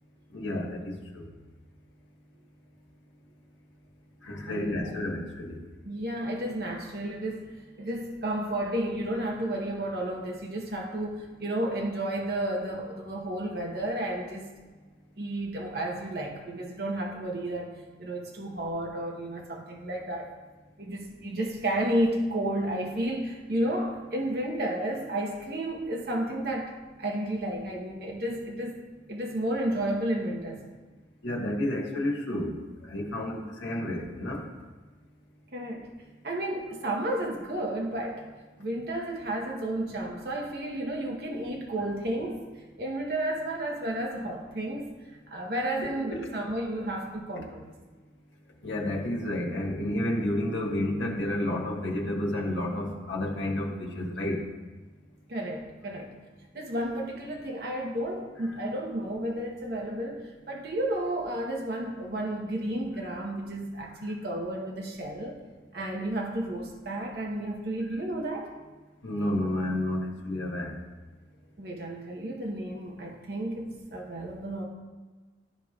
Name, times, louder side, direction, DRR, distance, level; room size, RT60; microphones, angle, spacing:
voice 1, 0.3-1.2 4.2-5.6 31.2-32.6 32.9-34.5 46.1-46.2 48.6-54.4 69.0-70.7, left 1 dB, 80° left, -2 dB, 1.4 m, -30 dB
voice 2, 4.5-4.9 5.8-7.4 7.8-14.5 15.2-17.7 18.0-20.3 20.8-28.8 29.1-30.6 35.5-35.8 36.2-38.2 38.6-42.4 42.8-44.9 45.3-47.7 55.3-56.1 56.5-65.4 65.7-68.5 71.6-74.6, right 1 dB, 55° right, -1 dB, 0.9 m, -32 dB
12.5 x 5.0 x 2.3 m, 1.3 s
head